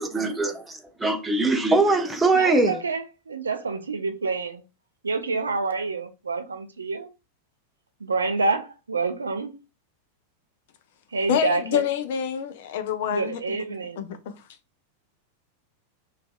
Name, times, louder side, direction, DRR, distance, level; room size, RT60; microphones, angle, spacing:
voice 1, 0.0-2.8, right 2 dB, 10° right, 0.5 m, -22 dB
voice 2, 2.3-4.6 5.0-7.1 8.0-9.6 11.1-11.8 13.1-14.0, right 3 dB, 75° right, 0.3 m, -27 dB
voice 3, 11.3-13.4 14.0-14.2, left 9 dB, 55° left, 0.3 m, -26 dB
2.5 x 2.3 x 2.2 m
figure-of-eight pair, 90°, 0 cm